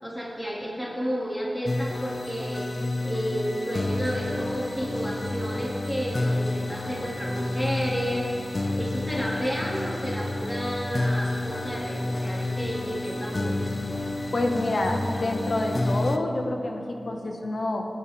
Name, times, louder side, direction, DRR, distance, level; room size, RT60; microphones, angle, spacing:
voice 1, 0.0-13.8, equal, 10° left, -5 dB, 2.4 m, -31 dB
sound 1, 1.7-16.2, left 2 dB, 35° left, 0.7 m, -30 dB
voice 2, 14.3-17.9, left 2 dB, 60° left, 2 dB, 1.5 m, -27 dB
28.0 x 9.3 x 3.5 m, 2.8 s
wide cardioid pair, 75°, 0 cm